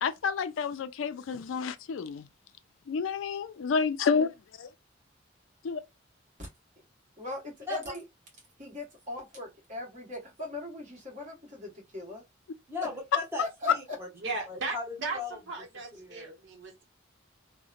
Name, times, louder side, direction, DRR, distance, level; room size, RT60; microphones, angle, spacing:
voice 1, 0.0-2.3 2.9-4.7 5.6-5.8, left 5 dB, 85° left, 0.4 m, -30 dB
voice 2, 7.2-8.0 8.6-12.2 13.4-13.7, left 2 dB, 40° right, 1.3 m, -39 dB
voice 3, 12.7-15.4 15.9-16.3, left 3 dB, 10° right, 0.8 m, -38 dB
voice 4, 14.1-16.8, right 3 dB, 70° right, 0.9 m, -37 dB
2.8 x 2.1 x 2.4 m
head